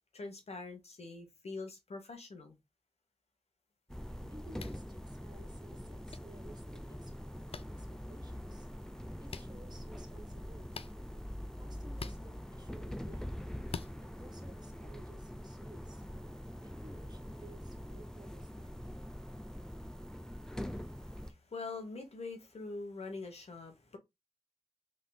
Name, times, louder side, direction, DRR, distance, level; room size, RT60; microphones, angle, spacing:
voice 1, 0.1-2.6 20.6-24.0, left 3 dB, 85° left, 1.2 m, -44 dB
sound 1, 3.9-21.3, equal, 5° left, 0.5 m, -44 dB
voice 2, 4.1-7.1 7.5-8.7 9.2-10.8 11.6-13.2 14.0-16.0 16.6-18.7 22.7-22.8, right 1 dB, 40° right, 1.2 m, -57 dB
sound 2, 4.5-4.8 6.1-6.2 7.5-7.6 9.3-9.5 10.7-10.9 11.9-12.2 13.7-13.9, left 5 dB, 65° left, 0.4 m, -43 dB
3.8 x 3.5 x 2.2 m
wide cardioid pair, 50°, 10 cm